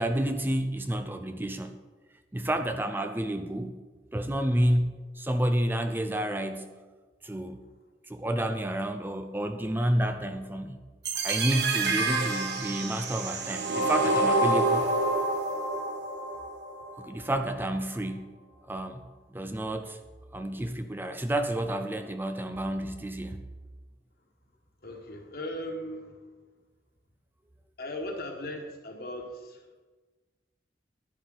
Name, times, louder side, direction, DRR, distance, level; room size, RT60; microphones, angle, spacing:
voice 1, 0.0-1.8 2.3-3.8 4.1-6.7 7.2-7.6 8.1-10.8 11.2-14.9 17.0-18.3 18.6-19.0 19.3-20.0 20.3-23.4, right 1 dB, 10° right, 8 dB, 0.5 m, -30 dB
sound 1, 11.0-17.1, right 2 dB, 75° right, 1.4 m, -28 dB
voice 2, 24.8-26.2 27.8-29.8, left 1 dB, 60° left, 2 dB, 1.7 m, -38 dB
11.0 x 10.0 x 4.0 m, 1.3 s
head